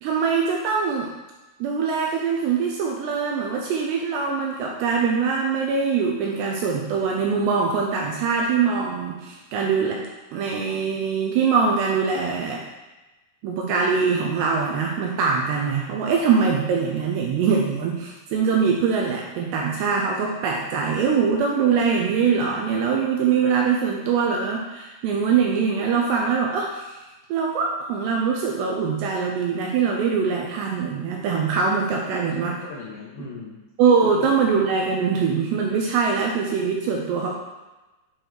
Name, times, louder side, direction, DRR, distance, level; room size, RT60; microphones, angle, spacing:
voice 1, 0.0-1.1 1.6-10.0 10.3-12.6 13.4-27.0 27.3-32.5 33.8-37.3, right 5 dB, 85° right, -1 dB, 2.5 m, -23 dB
voice 2, 32.1-33.6 34.0-34.4, left 4 dB, 85° left, -4 dB, 2.0 m, -39 dB
8.0 x 4.6 x 4.7 m, 1.1 s
omnidirectional pair, 5.5 m